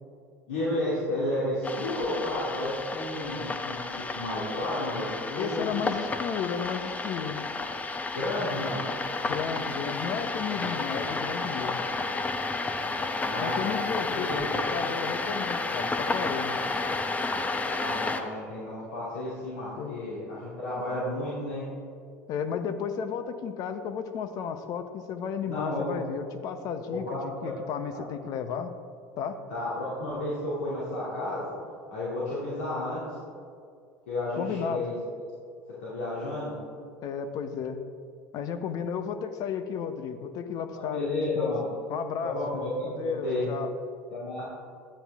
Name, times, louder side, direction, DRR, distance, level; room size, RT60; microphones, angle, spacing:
voice 1, 0.5-5.6 8.1-8.8 13.2-13.8 14.1-14.4 17.8-21.6 25.5-26.0 26.9-27.5 27.9-28.0 29.5-31.4 31.9-33.2 34.1-34.9 35.8-36.5 40.7-41.6 42.2-43.5 44.1-44.4, left 1 dB, 75° left, -8 dB, 2.5 m, -32 dB
sound 1, 1.6-18.2, left 3 dB, 20° left, 0.8 m, -31 dB
voice 2, 5.4-7.4 9.2-11.8 13.4-16.5 19.8-20.0 22.3-28.7 29.2-29.4 34.4-34.8 37.0-37.8 38.3-41.6 41.9-42.4 42.8-43.7, left 7 dB, 50° left, 9 dB, 0.9 m, -33 dB
11.5 x 9.0 x 3.5 m, 2.3 s
hypercardioid pair, 80°, 8 cm